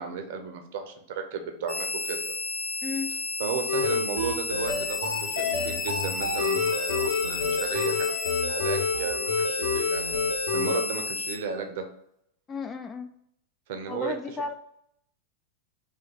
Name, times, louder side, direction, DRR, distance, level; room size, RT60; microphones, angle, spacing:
voice 1, 0.0-2.3 3.4-8.2 8.5-10.2 10.5-11.9 13.7-14.1, right 5 dB, 55° right, 5 dB, 0.6 m, -34 dB
sound 1, 1.7-11.3, left 4 dB, 40° left, 0.9 m, -32 dB
voice 2, 2.8-3.1 12.5-13.1 13.8-14.5, left 4 dB, 20° left, 7 dB, 0.3 m, -33 dB
sound 2, 3.7-10.8, left 4 dB, 85° left, 0.8 m, -28 dB
3.5 x 2.6 x 3.9 m, 0.73 s
figure-of-eight pair, 90°, 0 cm